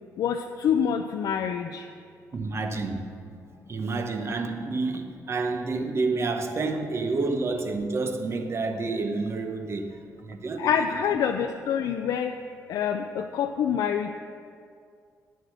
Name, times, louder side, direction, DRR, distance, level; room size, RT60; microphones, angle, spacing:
voice 1, 0.2-1.9 10.6-12.3 12.7-14.1, left 8 dB, 85° left, 0.4 m, -26 dB
voice 2, 2.3-3.2 3.7-11.2, right 3 dB, 45° right, 1.0 m, -29 dB
9.4 x 7.7 x 6.3 m
cardioid pair, 100°, 6 cm